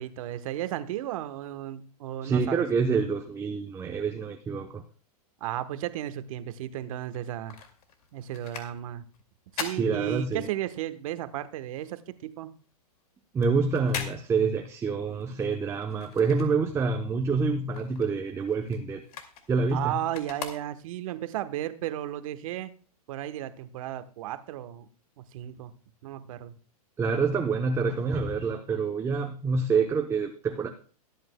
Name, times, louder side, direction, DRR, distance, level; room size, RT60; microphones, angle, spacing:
voice 1, 0.0-2.6 5.4-7.6 8.1-9.0 9.5-12.5 19.7-22.7 23.1-24.9 25.2-25.7 26.0-26.5, right 12 dB, 60° right, 11 dB, 1.1 m, -34 dB
voice 2, 2.2-4.8 9.7-10.5 13.3-19.0 19.5-20.0 27.0-30.7, right 4 dB, 15° right, 5 dB, 0.8 m, -27 dB
sound 1, 7.0-10.8 11.1-17.1 17.4-21.2 21.7-21.8, left 7 dB, 70° left, 2.3 m, -42 dB
22.0 x 8.7 x 2.2 m, 0.40 s
hypercardioid pair, 130°, 20 cm